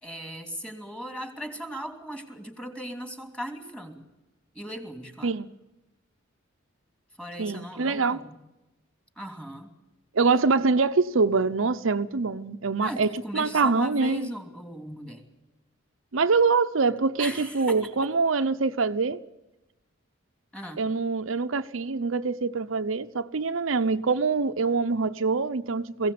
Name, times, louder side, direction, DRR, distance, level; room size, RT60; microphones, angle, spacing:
voice 1, 0.0-4.0 4.5-5.3 7.2-8.4 9.2-9.7 12.8-15.2 17.2-17.9 20.5-20.8, right 1 dB, 5° left, 2.9 m, -38 dB
voice 2, 7.4-8.2 10.1-14.3 16.1-19.2 20.8-26.1, right 4 dB, 70° right, 0.7 m, -24 dB
22.0 x 16.5 x 8.6 m
head